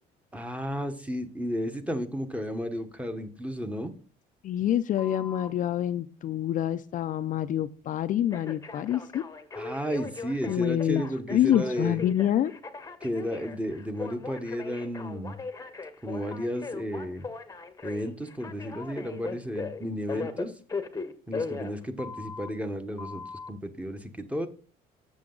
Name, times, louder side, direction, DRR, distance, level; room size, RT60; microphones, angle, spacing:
voice 1, 0.3-3.9 9.5-12.0 13.0-15.4 16.0-17.3 17.8-20.5 21.3-24.5, equal, 10° right, 8 dB, 1.0 m, -33 dB
voice 2, 4.4-9.2 10.5-11.0 11.3-12.5, left 11 dB, 50° left, 10 dB, 0.4 m, -26 dB
Telephone, 5.0-5.5 8.3-22.5 23.0-23.5, left 4 dB, 20° left, 0.8 m, -39 dB
7.4 x 6.9 x 3.8 m, 0.40 s
cardioid pair, 110°, 17 cm